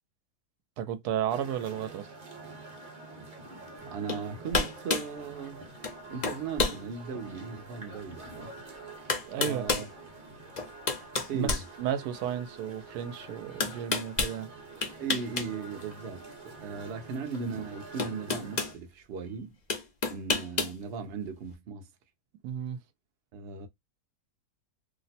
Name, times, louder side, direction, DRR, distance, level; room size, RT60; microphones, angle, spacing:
voice 1, 0.8-2.1 9.3-9.6 11.3-14.5 22.4-22.8, right 9 dB, 85° right, 1.1 m, -33 dB
sound 1, 1.3-18.7, right 3 dB, 35° right, 0.9 m, -47 dB
voice 2, 3.9-5.6 6.1-8.5 9.4-9.9 11.3-11.6 15.0-19.6 20.1-21.9 23.3-23.7, right 5 dB, 60° right, 0.7 m, -37 dB
sound 2, 4.1-4.2 4.5-5.1 5.8-6.0 6.2-6.8 7.4-7.5 8.6-8.7 9.1-9.9 10.6-12.2 13.6-14.4 14.8-15.5 15.8-15.9 17.3-17.4 18.0-18.7 19.7-20.8, left 4 dB, 50° left, 0.5 m, -30 dB
2.8 x 2.0 x 4.1 m
omnidirectional pair, 1.6 m